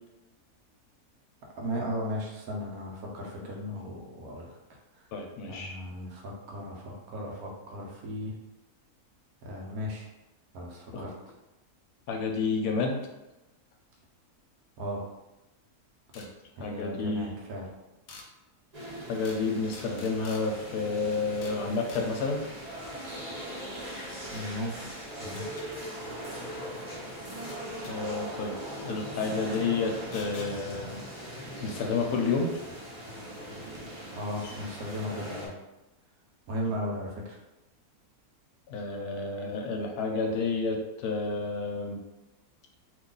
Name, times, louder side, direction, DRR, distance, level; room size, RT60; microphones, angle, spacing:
voice 1, 1.6-4.6 5.5-8.3 9.4-10.1 10.5-11.1 14.8-15.0 16.6-17.7 23.9-24.9 25.2-25.6 34.1-35.5 36.5-37.4, equal, 70° right, -2 dB, 1.2 m, -36 dB
voice 2, 5.1-5.8 10.9-11.1 12.1-13.0 16.1-16.3 16.6-17.3 19.1-22.4 27.9-31.0 31.6-32.5 38.7-42.0, left 4 dB, 90° left, 3 dB, 1.1 m, -30 dB
sound 1, 16.1-16.3 18.1-18.3 19.2-19.4 19.7-20.4 21.4-21.6 21.9-22.1 24.3-24.4 25.4-25.7 27.5-27.9 30.1-30.5 32.5-32.6 33.6-33.7 34.1-34.2 34.4-34.5, left 4 dB, 70° left, 1.0 m, -47 dB
sound 2, 18.7-35.5, equal, 35° right, 0.7 m, -40 dB
2.9 x 2.4 x 3.8 m, 0.98 s
omnidirectional pair, 1.6 m